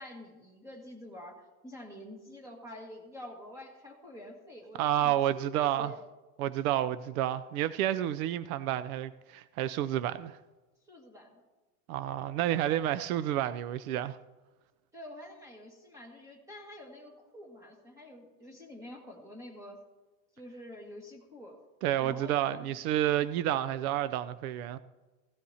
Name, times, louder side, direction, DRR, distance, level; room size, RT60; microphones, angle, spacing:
voice 1, 0.0-6.0 10.9-11.4 14.9-19.8 20.4-21.6 22.0-22.8, left 1 dB, 5° right, 1.7 m, -47 dB
voice 2, 4.8-5.9 6.4-10.4 11.9-14.2 21.8-24.8, right 12 dB, 75° right, 0.6 m, -30 dB
16.5 x 13.0 x 2.8 m
supercardioid pair, 170°, 44 cm